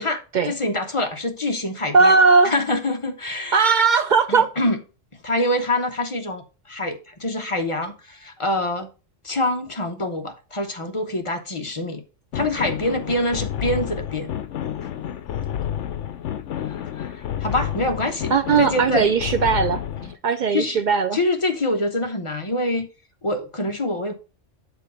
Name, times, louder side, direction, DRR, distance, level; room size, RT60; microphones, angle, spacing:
voice 1, 0.0-2.1 2.4-3.7 4.3-4.8 5.2-8.9 9.2-12.0 12.3-14.3 16.6-18.3 18.6-19.1 20.5-20.8 21.1-22.9 23.2-24.1, left 1 dB, 30° left, 0.7 m, -25 dB
voice 2, 1.9-2.6 3.5-4.5 18.3-19.8 20.2-21.2, right 4 dB, 70° right, 0.4 m, -18 dB
sound 1, 12.3-20.2, left 10 dB, 70° left, 1.0 m, -30 dB
7.1 x 4.0 x 5.3 m
omnidirectional pair, 1.3 m